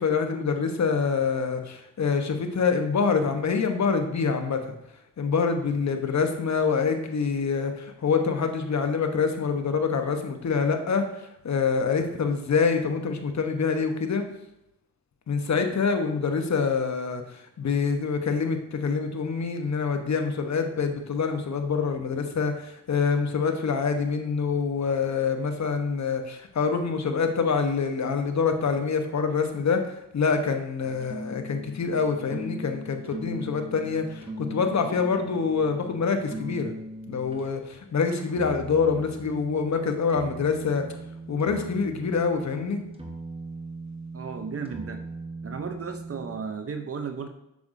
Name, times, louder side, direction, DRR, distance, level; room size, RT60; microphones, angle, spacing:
voice 1, 0.0-4.7 5.2-14.2 15.3-36.7 37.1-40.9 41.3-42.8, left 5 dB, 50° left, 6 dB, 1.1 m, -26 dB
sound 1, 30.8-37.5 38.3-46.4, right 1 dB, 15° right, 1.3 m, -39 dB
voice 2, 44.1-45.0 45.4-47.3, right 5 dB, 40° right, 6 dB, 0.7 m, -34 dB
6.9 x 6.4 x 2.7 m, 0.86 s
cardioid pair, 60°, 35 cm